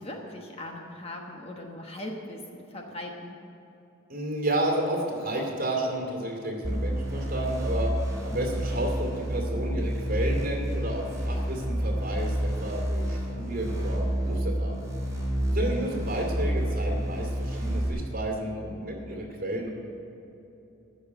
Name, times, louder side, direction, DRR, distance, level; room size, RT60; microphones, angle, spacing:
voice 1, 0.0-3.4 15.7-16.0, left 1 dB, 30° left, 1 dB, 1.1 m, -39 dB
voice 2, 4.1-14.7 15.5-19.7, right 1 dB, 40° right, 0 dB, 2.4 m, -31 dB
sound 1, 6.6-17.9, equal, 15° right, 3.6 m, -29 dB
14.5 x 6.4 x 9.2 m, 2.9 s
head